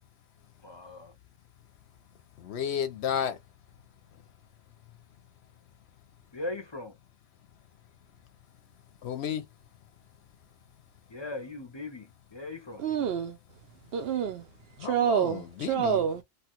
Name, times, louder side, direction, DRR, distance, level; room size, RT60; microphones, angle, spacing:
voice 1, 0.6-1.1 6.3-7.0 11.1-12.8, left 2 dB, 30° left, 0.6 m, -39 dB
voice 2, 2.4-3.4 9.0-9.4 14.8-16.0, left 9 dB, 70° left, 0.9 m, -32 dB
voice 3, 12.8-13.4 13.9-14.5 14.8-16.2, right 8 dB, 65° right, 0.7 m, -27 dB
3.0 x 2.3 x 2.8 m
omnidirectional pair, 1.2 m